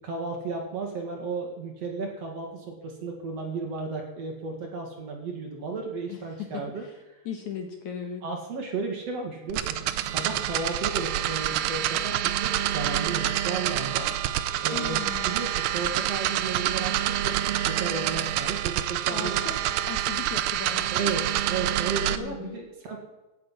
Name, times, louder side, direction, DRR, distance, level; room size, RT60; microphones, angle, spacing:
voice 1, 0.0-6.8 8.2-14.1 14.6-15.0 15.2-19.4 20.9-23.0, right 4 dB, 50° right, 2 dB, 2.2 m, -34 dB
voice 2, 5.7-7.0 7.3-8.2 14.7-15.3 19.1-19.5 19.9-20.9 22.2-22.7, left 7 dB, 65° left, 5 dB, 2.0 m, -38 dB
sound 1, 9.5-22.2, right 12 dB, 80° right, 2.5 m, -27 dB
17.0 x 9.8 x 5.9 m, 1.1 s
omnidirectional pair, 5.4 m